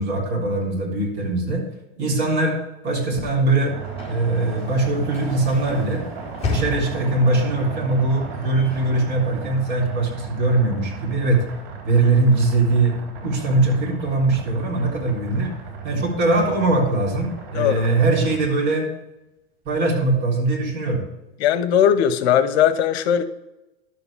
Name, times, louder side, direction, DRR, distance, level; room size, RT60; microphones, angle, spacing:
voice 1, 0.0-1.6 2.0-2.6 2.8-3.7 4.1-6.0 6.5-11.4 11.8-12.9 13.2-15.5 15.8-18.9 19.7-21.0, right 2 dB, 30° right, -2 dB, 3.7 m, -21 dB
Sliding door / Slam, 3.0-10.0, left 3 dB, 20° left, 4.0 m, -35 dB
sound 1, 3.7-18.5, right 6 dB, 65° right, 4.1 m, -36 dB
voice 2, 17.5-17.9 21.4-23.2, left 9 dB, 75° left, 11 dB, 1.0 m, -18 dB
11.5 x 7.8 x 3.5 m, 0.94 s
supercardioid pair, 145°, 33 cm